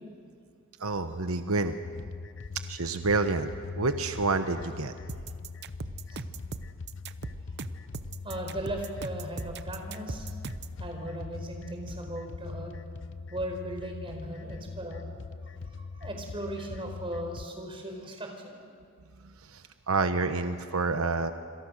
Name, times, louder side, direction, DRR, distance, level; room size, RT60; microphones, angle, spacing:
voice 1, 0.8-1.8 2.7-4.9 19.2-21.3, right 3 dB, 90° right, 8 dB, 1.1 m, -28 dB
sound 1, 1.8-17.5, left 4 dB, 60° left, 0.6 m, -42 dB
sound 2, 5.1-10.8, right 4 dB, 50° right, 0.8 m, -39 dB
voice 2, 8.2-10.3 10.8-12.7 13.3-15.2 15.6-18.6, right 1 dB, 25° right, 3 dB, 4.7 m, -37 dB
27.0 x 26.5 x 6.5 m, 2.2 s
head